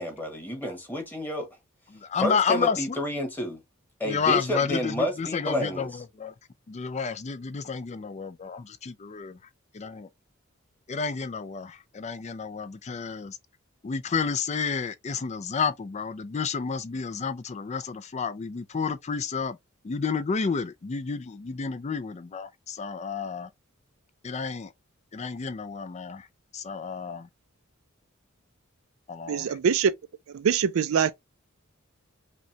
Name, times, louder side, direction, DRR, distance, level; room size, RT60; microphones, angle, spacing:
voice 1, 0.0-1.5 2.2-3.6 4.0-6.0, left 1 dB, 10° left, 1.4 m, -30 dB
voice 2, 1.9-3.0 4.0-6.3 6.7-9.4 9.7-10.1 10.9-13.4 13.8-19.6 19.8-23.5 24.2-24.7 25.1-26.3 26.5-27.3 29.1-29.6, left 5 dB, 35° left, 0.4 m, -30 dB
voice 3, 29.3-29.9 30.3-31.1, right 7 dB, 80° right, 0.4 m, -23 dB
5.1 x 2.3 x 2.8 m
head